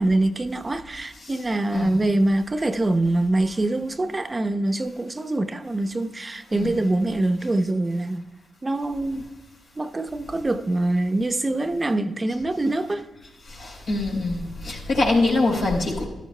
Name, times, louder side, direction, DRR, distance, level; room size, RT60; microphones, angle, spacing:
voice 1, 0.0-8.2 8.6-9.3 9.8-13.1, right 2 dB, 30° right, 0.7 m, -24 dB
voice 2, 13.6-16.0, left 2 dB, 80° left, 3.8 m, -23 dB
14.5 x 12.5 x 2.2 m
hypercardioid pair, 45°, 0 cm